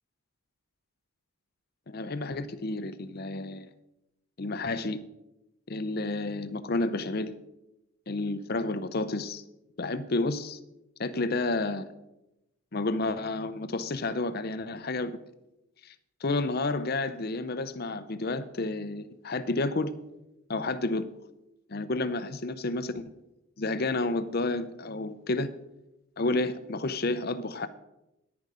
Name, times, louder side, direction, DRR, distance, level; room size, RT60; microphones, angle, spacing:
voice 1, 1.9-3.7 4.4-5.0 5.7-7.3 8.1-9.4 9.8-10.6 11.0-11.9 12.7-15.2 15.8-15.9 16.2-19.9 20.5-21.1 21.7-22.9 23.6-25.5 26.2-27.7, left 2 dB, 45° left, 13 dB, 0.6 m, -30 dB
10.5 x 9.8 x 5.0 m, 0.92 s
head